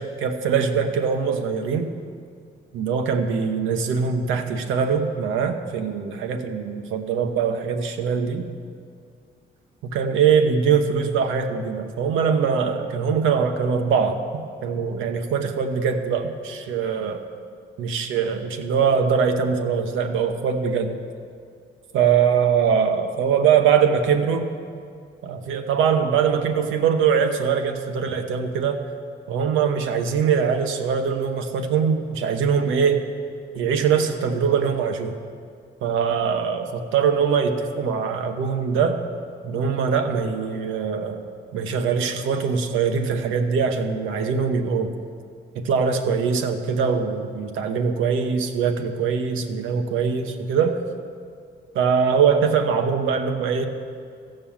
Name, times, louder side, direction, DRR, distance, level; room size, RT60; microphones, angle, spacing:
voice 1, 0.0-1.9 2.7-8.5 9.8-14.2 14.6-17.2 17.8-20.9 21.9-24.5 25.2-28.8 29.3-33.0 33.5-35.1 35.8-39.0 39.4-41.2 41.5-44.9 45.5-50.8 51.7-53.6, right 6 dB, 90° right, 6 dB, 0.9 m, -22 dB
14.5 x 5.5 x 7.1 m, 2.2 s
cardioid pair, 90°, 20 cm